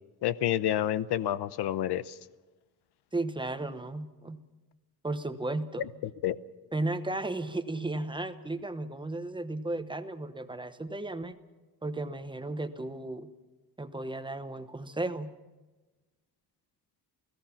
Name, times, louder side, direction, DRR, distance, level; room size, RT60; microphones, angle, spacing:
voice 1, 0.2-2.2 5.8-5.9 6.2-6.4, left 12 dB, 80° left, 15 dB, 0.9 m, -29 dB
voice 2, 3.1-4.4 5.0-5.8 6.7-11.4 11.8-13.3 13.8-15.3, right 2 dB, 10° right, 10 dB, 1.0 m, -34 dB
29.0 x 17.5 x 5.8 m, 1.2 s
wide cardioid pair, 170°, 39 cm